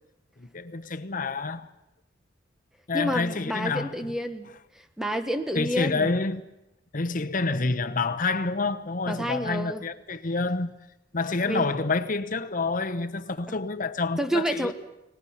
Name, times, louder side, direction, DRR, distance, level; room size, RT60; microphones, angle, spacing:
voice 1, 0.4-1.7 2.9-4.1 5.5-6.4 6.9-10.7 11.1-14.7, left 3 dB, 45° left, 1.0 m, -28 dB
voice 2, 2.9-6.1 9.1-9.8 11.4-11.7 13.5-13.6 14.2-14.7, equal, 5° right, 1.2 m, -29 dB
29.5 x 18.5 x 5.8 m
head